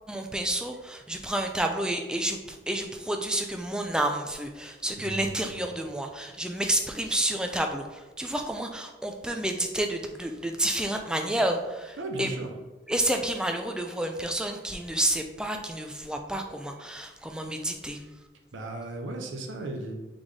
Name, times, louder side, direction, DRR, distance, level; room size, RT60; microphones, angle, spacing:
voice 1, 0.1-12.3 12.9-18.0, right 1 dB, 5° right, 4 dB, 0.3 m, -30 dB
voice 2, 5.1-5.4 12.0-12.5 18.5-20.0, right 2 dB, 85° right, 3 dB, 0.7 m, -35 dB
4.0 x 3.5 x 3.2 m, 1.1 s
head